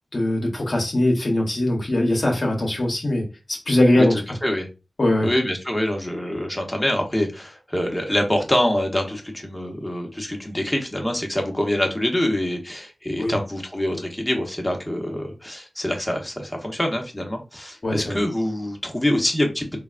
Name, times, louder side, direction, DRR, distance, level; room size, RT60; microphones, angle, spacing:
voice 1, 0.1-4.2 5.0-5.3 13.2-13.4 17.8-18.2, left 1 dB, 55° left, 0.9 m, -21 dB
voice 2, 3.9-4.7 5.2-19.7, left 1 dB, 10° left, 0.9 m, -25 dB
3.3 x 2.3 x 2.4 m
cardioid pair, 50°, 0 cm